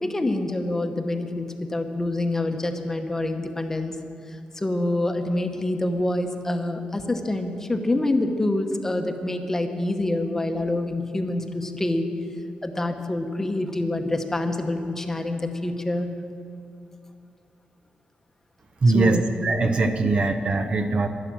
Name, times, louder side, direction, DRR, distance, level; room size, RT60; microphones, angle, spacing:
voice 1, 0.0-4.0 4.3-12.1 12.6-16.1 18.9-19.2, left 2 dB, 15° left, 5 dB, 0.9 m, -26 dB
voice 2, 18.8-21.1, right 3 dB, 40° right, 7 dB, 0.7 m, -21 dB
11.5 x 11.5 x 7.5 m, 2.5 s
wide cardioid pair, 140°, 3 cm